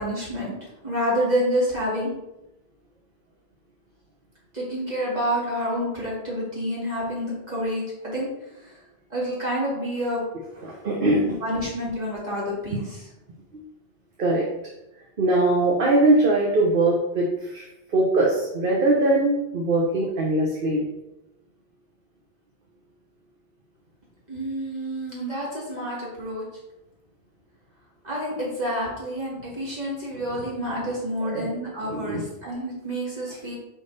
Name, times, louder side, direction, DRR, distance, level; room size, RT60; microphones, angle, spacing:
voice 1, 0.0-2.1 4.5-8.3 8.6-8.8 9.1-10.2 11.4-13.0 24.3-26.4 28.0-33.6, equal, 40° right, -5 dB, 2.5 m, -28 dB
voice 2, 10.6-11.2 14.2-14.5 15.2-20.8 31.2-31.5 31.8-32.2, right 2 dB, 60° right, -2 dB, 1.2 m, -21 dB
5.5 x 5.3 x 4.1 m, 0.92 s
omnidirectional pair, 1.0 m